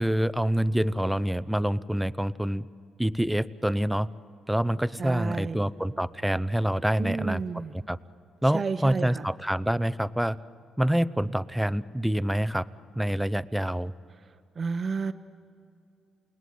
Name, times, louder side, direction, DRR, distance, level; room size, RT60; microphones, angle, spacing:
voice 1, 0.0-2.7 3.0-4.1 4.5-7.4 7.7-8.0 8.4-10.4 10.8-12.6 13.0-13.9, right 1 dB, 5° right, 15 dB, 0.6 m, -26 dB
voice 2, 5.0-5.6 7.0-7.7 8.5-9.3 14.6-15.1, right 4 dB, 40° right, 7 dB, 0.9 m, -31 dB
28.5 x 19.0 x 9.4 m, 2.4 s
cardioid pair, 90°, 0 cm